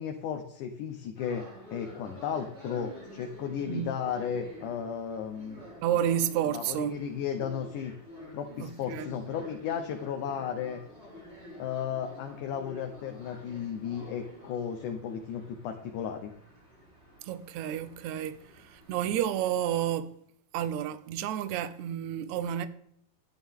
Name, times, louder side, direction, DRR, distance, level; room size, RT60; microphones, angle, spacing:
voice 1, 0.0-1.5 1.7-5.6 6.5-7.9 8.3-10.8 11.6-16.3, left 8 dB, 70° left, 2.3 m, -34 dB
sound 1, 1.2-19.5, equal, 15° right, 5.2 m, -49 dB
voice 2, 5.8-7.0 8.6-9.1 17.2-20.1 20.5-22.7, right 10 dB, 75° right, 1.7 m, -30 dB
11.5 x 11.0 x 3.6 m
omnidirectional pair, 4.0 m